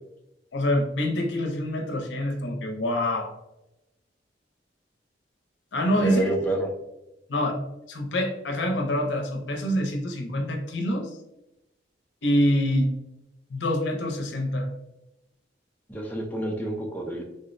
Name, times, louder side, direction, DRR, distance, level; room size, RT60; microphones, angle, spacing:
voice 1, 0.5-3.3 5.7-6.3 7.3-7.6 7.9-11.2 12.2-12.9 13.5-14.7, left 1 dB, 85° left, 3 dB, 0.6 m, -26 dB
voice 2, 6.0-6.7 15.9-17.2, right 1 dB, 10° left, -1 dB, 0.4 m, -28 dB
3.6 x 2.0 x 2.5 m, 0.92 s
head